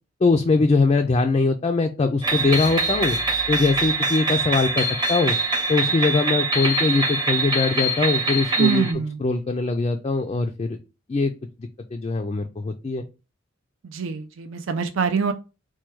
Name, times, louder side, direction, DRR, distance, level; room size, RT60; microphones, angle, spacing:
voice 1, 0.2-3.2 3.5-5.4 5.7-8.9 9.2-10.8 11.1-11.3 11.6-13.1, left 3 dB, 30° left, 0.3 m, -22 dB
sound 1, 2.2-8.9, right 2 dB, 20° right, 0.8 m, -24 dB
voice 2, 8.6-9.2 13.9-15.3, right 6 dB, 70° right, 0.4 m, -24 dB
4.4 x 2.2 x 4.5 m
head